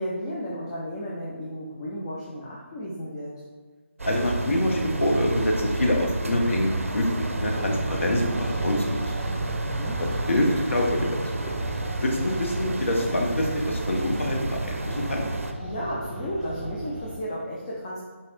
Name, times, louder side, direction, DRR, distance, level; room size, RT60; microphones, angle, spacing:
voice 1, 0.0-3.3 9.6-10.0 11.9-12.4 15.6-18.0, equal, 25° left, -5 dB, 0.5 m, -33 dB
voice 2, 4.0-8.3 8.6-9.0 9.3-9.4 10.3-11.1 11.4-11.5 12.0-15.2, left 1 dB, 70° left, 0 dB, 0.8 m, -25 dB
sound 1, 4.0-15.5, right 2 dB, 80° right, 0.4 m, -31 dB
sound 2, 7.2-17.2, right 1 dB, 15° right, 0.8 m, -35 dB
4.1 x 3.2 x 2.5 m, 1.3 s
figure-of-eight pair, 160°, 7 cm